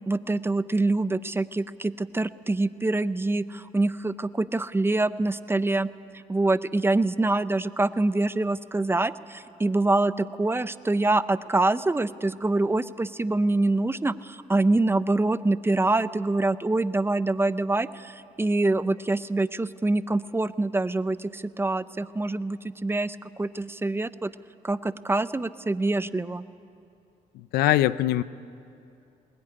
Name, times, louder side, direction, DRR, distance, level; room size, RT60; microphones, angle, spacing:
voice 1, 0.1-5.9 6.1-24.3 24.6-26.4, right 2 dB, 15° right, 14 dB, 0.7 m, -25 dB
voice 2, 27.3-28.2, left 15 dB, 90° left, 17 dB, 0.6 m, -22 dB
20.5 x 20.5 x 9.8 m, 2.6 s
cardioid pair, 85°, 16 cm